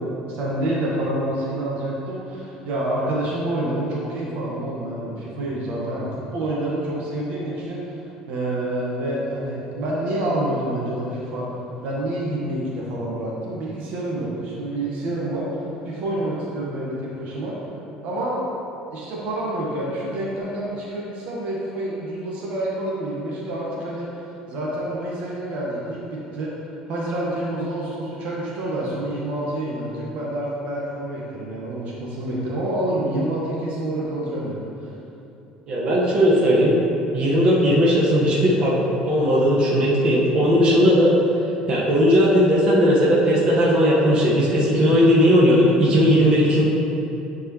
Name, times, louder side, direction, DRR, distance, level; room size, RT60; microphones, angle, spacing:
voice 1, 0.3-8.0 8.3-11.4 11.8-15.5 15.8-17.6 18.0-18.4 18.9-26.5 26.9-34.9, right 1 dB, 65° right, -5 dB, 1.5 m, -27 dB
voice 2, 35.7-36.7 37.1-38.8 39.0-41.2 41.7-46.6, equal, 40° right, -6 dB, 1.5 m, -17 dB
10.0 x 4.7 x 3.2 m, 2.8 s
cardioid pair, 130°, 3 cm